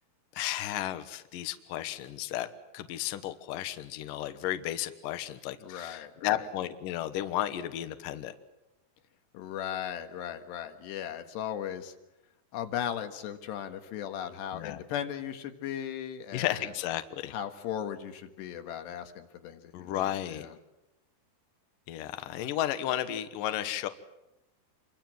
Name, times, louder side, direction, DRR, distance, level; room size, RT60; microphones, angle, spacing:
voice 1, 0.4-2.5 2.7-8.3 14.5-14.8 16.3-17.3 19.7-20.5 21.9-23.9, left 13 dB, 65° left, 10 dB, 2.6 m, -33 dB
voice 2, 5.6-6.5 9.3-11.9 12.5-16.7 17.3-20.6, left 9 dB, 85° left, 7 dB, 3.8 m, -37 dB
28.0 x 23.5 x 7.7 m, 0.92 s
omnidirectional pair, 4.7 m